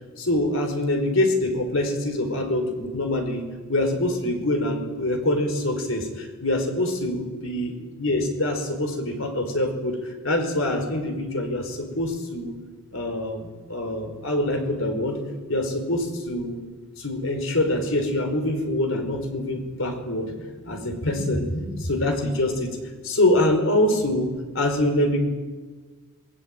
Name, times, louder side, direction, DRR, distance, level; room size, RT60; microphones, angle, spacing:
voice 1, 0.2-10.0 10.2-12.6 12.9-15.2 15.5-16.6 17.0-22.7 23.0-25.2, left 1 dB, 65° left, 5 dB, 5.1 m, -25 dB
27.5 x 19.5 x 9.1 m, 1.4 s
head